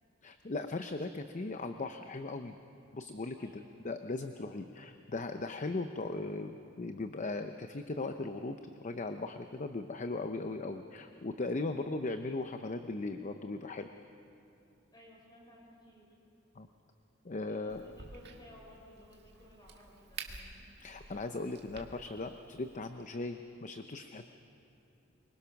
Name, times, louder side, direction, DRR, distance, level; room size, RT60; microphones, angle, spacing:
voice 1, 0.2-2.6 2.9-13.9 16.6-16.7 17.2-17.8 20.8-24.3, left 2 dB, 40° left, 7 dB, 0.7 m, -38 dB
voice 2, 3.4-3.8 14.9-16.2 17.4-20.7, equal, 20° left, -3 dB, 5.9 m, -58 dB
Crack, 17.7-22.8, right 5 dB, 60° right, 1.9 m, -50 dB
25.0 x 23.0 x 5.9 m, 2.7 s
head